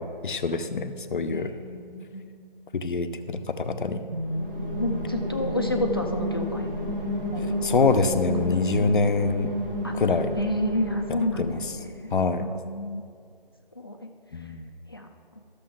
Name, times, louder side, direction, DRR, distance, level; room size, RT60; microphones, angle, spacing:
voice 1, 0.0-1.5 2.7-4.0 7.6-9.6 10.0-10.4 11.1-11.6 12.1-12.5 14.3-14.7, left 4 dB, 60° left, 9 dB, 0.7 m, -25 dB
voice 2, 1.3-2.4 4.3-4.4 4.8-6.7 7.3-8.1 8.5-8.9 9.8-9.9 10.4-12.1 12.4-13.0 13.8-14.0 14.9-15.1, left 1 dB, 25° left, 2 dB, 0.4 m, -31 dB
sound 1, 4.1-11.9, equal, 65° right, 2.0 m, -31 dB
13.0 x 6.6 x 3.8 m, 2.3 s
hypercardioid pair, 170°, 29 cm